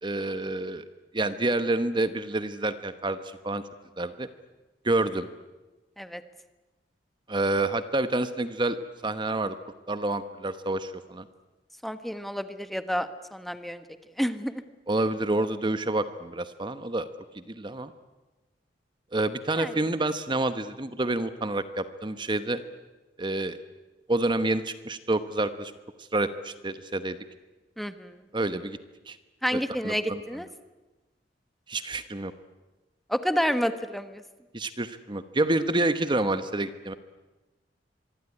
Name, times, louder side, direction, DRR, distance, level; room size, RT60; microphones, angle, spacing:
voice 1, 0.0-0.8 1.1-3.6 4.0-4.3 4.8-5.3 7.3-8.8 9.0-9.6 9.9-11.2 14.9-17.1 17.3-17.9 19.1-22.6 23.2-23.6 24.1-25.7 26.1-27.2 28.3-28.8 29.1-29.2 29.5-30.2 31.7-32.3 34.5-36.9, right 2 dB, 25° right, 11 dB, 1.0 m, -28 dB
voice 2, 11.8-13.8 14.2-14.6 19.6-19.7 27.8-28.2 29.4-30.5 33.1-34.2, equal, ahead, 10 dB, 1.2 m, -29 dB
25.0 x 22.5 x 9.8 m, 1.1 s
head